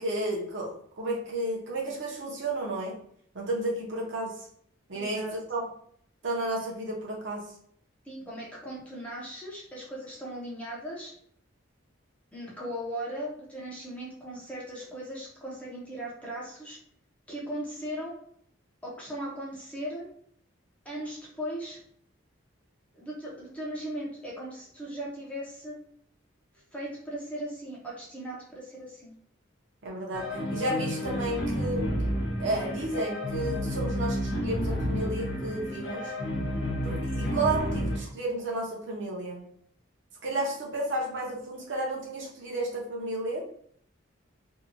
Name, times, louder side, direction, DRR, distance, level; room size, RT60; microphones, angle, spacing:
voice 1, 0.0-3.0 3.3-4.5 4.9-5.6 6.2-7.5 29.8-31.9 32.4-36.1 36.8-39.4 40.2-43.5, right 1 dB, 65° right, -2 dB, 0.7 m, -32 dB
voice 2, 4.9-5.3 8.0-11.1 12.3-16.8 17.3-18.1 18.8-20.1 20.8-21.8 22.9-25.8 26.7-29.1, equal, 5° left, -5 dB, 0.6 m, -38 dB
sound 1, 30.1-38.0, equal, 70° left, 0.8 m, -30 dB
2.7 x 2.2 x 2.5 m, 0.63 s
head